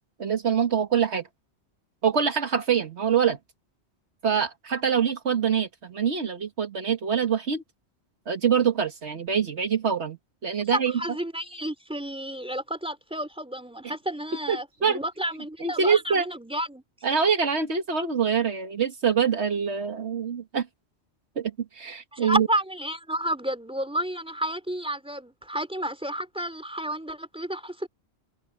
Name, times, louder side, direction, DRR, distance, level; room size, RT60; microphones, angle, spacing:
voice 1, 0.2-1.2 2.0-3.4 4.2-7.6 8.3-11.0 14.5-15.0 15.6-16.3 17.0-20.7 21.4-22.5, right 7 dB, 75° right, 1.8 m, -25 dB
voice 2, 10.9-16.8 22.1-27.9, right 1 dB, 5° right, 3.6 m, -31 dB
omnidirectional pair, 1.1 m